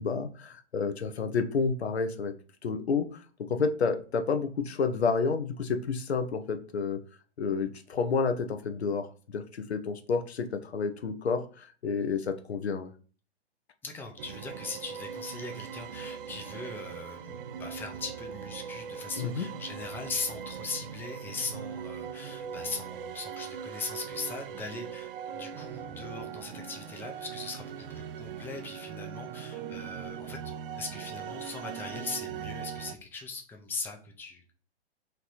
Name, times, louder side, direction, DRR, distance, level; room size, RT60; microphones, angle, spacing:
voice 1, 0.0-2.3 2.6-7.0 7.4-12.9 19.2-19.5, left 5 dB, 85° left, 8 dB, 0.7 m, -30 dB
voice 2, 13.8-30.4 30.8-34.5, left 4 dB, 5° left, 3 dB, 0.4 m, -40 dB
sound 1, 14.2-33.0, right 8 dB, 60° right, 0.5 m, -40 dB
3.2 x 2.9 x 3.9 m, 0.39 s
hypercardioid pair, 115°, 32 cm